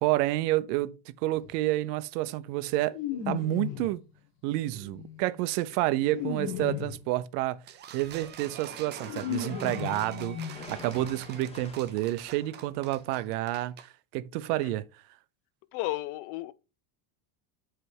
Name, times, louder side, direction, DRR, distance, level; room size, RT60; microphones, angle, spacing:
voice 1, 0.0-3.0 3.3-4.0 4.4-7.6 7.9-14.9, right 16 dB, 80° right, 0.7 m, -29 dB
sound 1, 1.3-1.5 2.9-4.0 4.8-7.1 8.4-8.5 8.8-11.1 11.3-11.4 11.7-11.8, left 9 dB, 50° left, 1.6 m, -36 dB
sound 2, 7.7-13.9, right 9 dB, 25° right, 0.4 m, -46 dB
sound 3, 8.0-13.6, left 3 dB, 15° left, 0.8 m, -51 dB
voice 2, 15.7-16.5, left 17 dB, 70° left, 0.6 m, -33 dB
8.0 x 3.3 x 4.7 m
cardioid pair, 145°, 46 cm